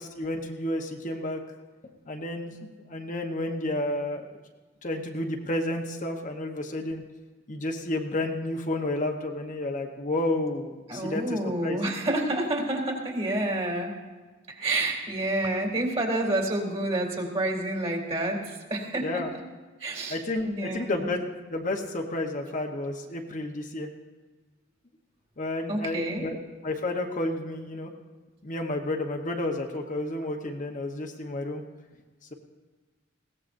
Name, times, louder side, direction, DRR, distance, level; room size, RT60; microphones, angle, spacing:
voice 1, 0.0-1.4 2.1-2.6 2.9-4.4 4.8-7.0 7.5-11.8 19.0-19.3 20.1-21.2 21.5-23.9 25.4-26.4 26.6-27.9 28.4-31.6, left 1 dB, 40° left, 2 dB, 1.0 m, -31 dB
voice 2, 10.9-14.0 14.5-19.2 19.8-21.2 25.7-26.3, right 1 dB, 30° right, 1 dB, 3.1 m, -29 dB
21.0 x 17.0 x 2.6 m, 1.3 s
head